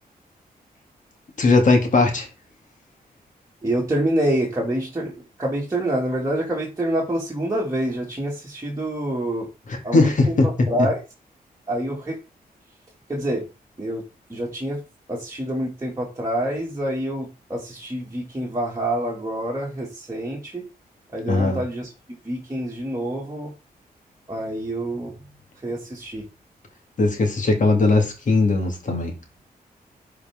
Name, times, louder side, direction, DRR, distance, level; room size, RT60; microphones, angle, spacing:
voice 1, 1.4-2.3 9.7-10.5 21.3-21.6 27.0-29.1, left 3 dB, 55° left, 2.4 m, -19 dB
voice 2, 3.6-9.5 9.8-11.0 11.7-12.2 13.1-13.4 13.8-14.0 14.3-14.8 15.1-20.6 21.1-21.9 22.2-23.5 24.3-25.1 25.6-26.3, right 1 dB, 20° right, 2.4 m, -26 dB
11.0 x 4.8 x 3.7 m
cardioid pair, 105°, 16 cm